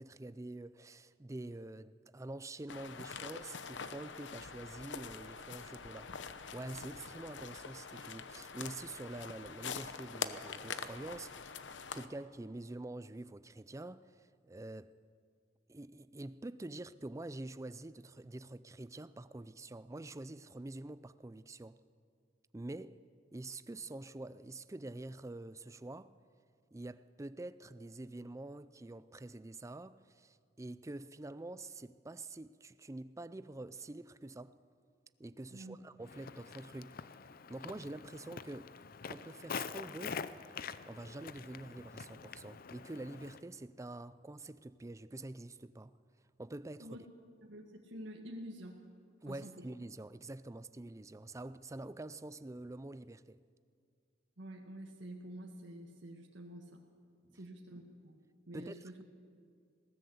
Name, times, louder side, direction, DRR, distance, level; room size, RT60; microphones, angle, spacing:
voice 1, 0.0-6.1 6.5-11.3 11.9-14.9 15.7-21.8 22.5-23.0 23.3-26.1 26.7-34.6 35.2-37.0 37.5-38.7 39.1-40.2 40.9-46.0 46.4-47.0 49.2-53.4 57.3-57.4 58.5-58.8, right 2 dB, 15° right, 0.4 m, -46 dB
sound 1, 2.7-12.1, left 6 dB, 75° left, 0.9 m, -45 dB
Walk footsteps, 36.0-43.4, left 6 dB, 50° left, 0.6 m, -46 dB
voice 2, 47.4-48.8 49.3-49.7 54.4-56.8 57.3-58.2 58.5-59.0, right 1 dB, 85° right, 1.8 m, -48 dB
20.0 x 17.5 x 8.0 m
head